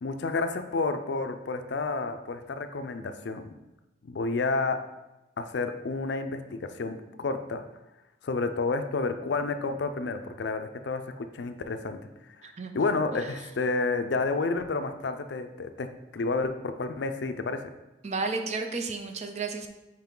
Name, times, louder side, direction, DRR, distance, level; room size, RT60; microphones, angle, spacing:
voice 1, 0.0-3.5 4.0-4.8 5.4-7.6 8.2-12.0 12.3-12.4 12.7-15.9 16.1-17.7, left 3 dB, 60° left, 8 dB, 0.4 m, -30 dB
voice 2, 18.0-19.7, right 4 dB, 35° right, 5 dB, 0.5 m, -32 dB
5.8 x 4.6 x 3.7 m, 1.0 s
head